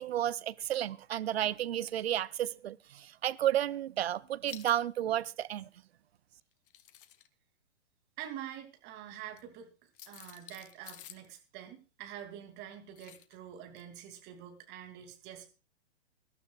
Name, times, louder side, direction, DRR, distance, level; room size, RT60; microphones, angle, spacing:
voice 1, 0.0-5.7, right 12 dB, 65° right, 0.7 m, -32 dB
sound 1, 4.5-4.8 6.5-7.3 9.3-9.4 9.9-11.3 13.0-13.3 13.8-13.9, left 11 dB, 50° left, 1.1 m, -51 dB
voice 2, 8.2-15.5, right 10 dB, 30° right, 2.8 m, -46 dB
24.0 x 12.0 x 2.4 m
figure-of-eight pair, 120°, 34 cm